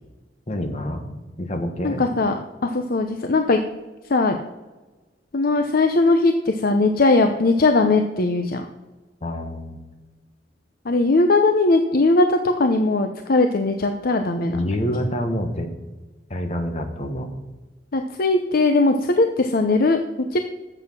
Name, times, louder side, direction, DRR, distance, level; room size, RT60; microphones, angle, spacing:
voice 1, 0.5-1.1 1.4-2.0 9.2-9.9 14.5-15.7 16.3-17.3, equal, 40° left, 4 dB, 1.4 m, -27 dB
voice 2, 1.8-3.6 4.1-4.4 5.3-8.7 10.8-14.6 17.9-20.0 20.3-20.4, left 3 dB, 55° left, 6 dB, 0.7 m, -19 dB
9.7 x 7.8 x 6.1 m, 1.2 s
head